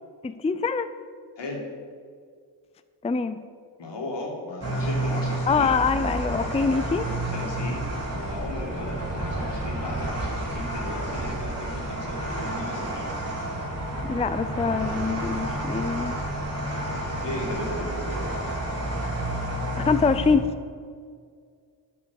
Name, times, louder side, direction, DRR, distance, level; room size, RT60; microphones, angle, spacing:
voice 1, 0.2-0.9 3.0-3.4 5.5-7.1 14.1-16.1 19.8-20.5, left 5 dB, 15° left, 11 dB, 0.4 m, -24 dB
voice 2, 3.8-5.7 7.1-7.8 8.1-13.1 17.2-18.2, left 2 dB, 70° left, -1 dB, 2.5 m, -36 dB
sound 1, 4.6-20.3, right 1 dB, 35° right, 2.9 m, -30 dB
9.4 x 5.3 x 7.0 m, 2.1 s
cardioid pair, 60°, 43 cm